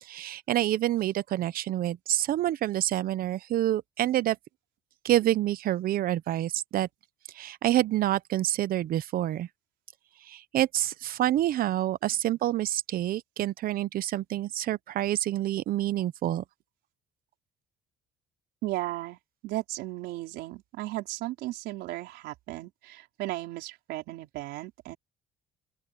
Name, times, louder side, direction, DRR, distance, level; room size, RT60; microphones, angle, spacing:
voice 1, 0.0-4.4 5.0-6.9 7.3-9.5 10.3-16.4, right 13 dB, 60° right, 0.7 m, -27 dB
voice 2, 18.6-25.0, right 17 dB, 90° right, 4.6 m, -35 dB
open air
cardioid pair, 110°, 17 cm